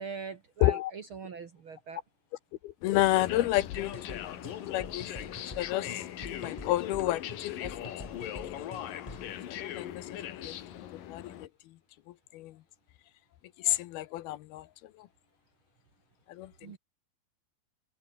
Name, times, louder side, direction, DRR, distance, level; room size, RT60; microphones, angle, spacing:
voice 1, 0.0-2.0 16.6-16.8, right 5 dB, 75° right, 1.2 m, -42 dB
voice 2, 2.6-5.9 6.3-7.9 8.5-9.0 9.5-10.5 11.1-11.5 12.3-12.6 13.6-14.7 15.0-15.1 16.3-16.7, left 15 dB, 75° left, 2.6 m, -31 dB
sound 1, 2.8-11.5, left 11 dB, 60° left, 2.9 m, -40 dB
sound 2, 3.7-9.4, left 1 dB, 10° left, 5.0 m, -47 dB
omnidirectional pair, 5.1 m